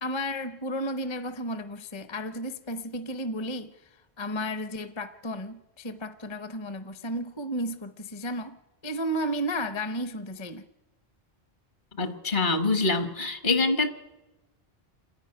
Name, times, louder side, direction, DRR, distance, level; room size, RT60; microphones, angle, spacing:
voice 1, 0.0-3.7 4.2-8.6 8.8-10.7, equal, 30° left, 0.7 m, -33 dB
voice 2, 12.0-13.9, left 3 dB, 50° left, 1.4 m, -25 dB
27.5 x 10.5 x 9.8 m
omnidirectional pair, 1.0 m